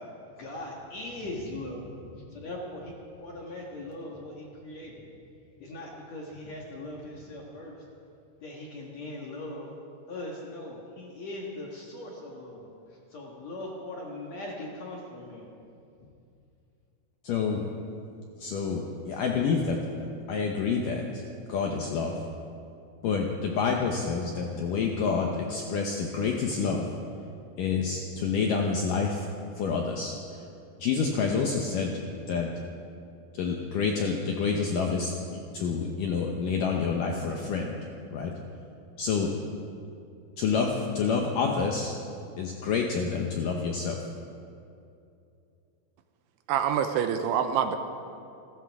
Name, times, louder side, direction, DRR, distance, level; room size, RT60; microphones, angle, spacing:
voice 1, 0.0-5.1 5.6-7.8 8.4-9.7 10.1-15.5, left 1 dB, 55° left, -2 dB, 2.1 m, -40 dB
voice 2, 17.2-17.6 18.4-19.8 20.3-21.2 21.5-22.1 23.0-26.9 27.6-29.3 29.6-30.2 30.8-31.9 32.2-32.5 33.4-37.8 38.1-38.3 39.0-39.3 40.4-41.9 42.4-44.0, left 5 dB, 75° left, 1 dB, 2.0 m, -28 dB
voice 3, 46.5-47.8, right 8 dB, 80° right, 7 dB, 2.7 m, -26 dB
29.0 x 13.5 x 3.6 m, 2.6 s
omnidirectional pair, 5.0 m